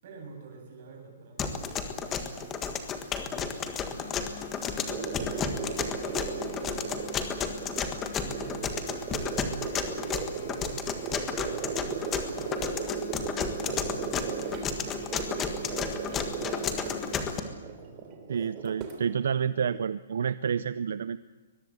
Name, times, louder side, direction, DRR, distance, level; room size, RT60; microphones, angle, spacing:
voice 1, 0.0-2.9 3.2-7.1 8.2-12.6 13.6-15.1 15.5-18.4, right 4 dB, 35° right, 1 dB, 7.9 m, -49 dB
sound 1, 1.4-17.4, left 6 dB, 10° left, 1.5 m, -32 dB
sound 2, 3.9-17.4, left 7 dB, 75° left, 3.5 m, -48 dB
sound 3, 4.8-19.8, right 6 dB, 20° right, 3.0 m, -37 dB
voice 2, 18.3-21.2, right 7 dB, 65° right, 15 dB, 0.6 m, -29 dB
23.0 x 21.5 x 8.0 m, 1.3 s
hypercardioid pair, 180°, 0 cm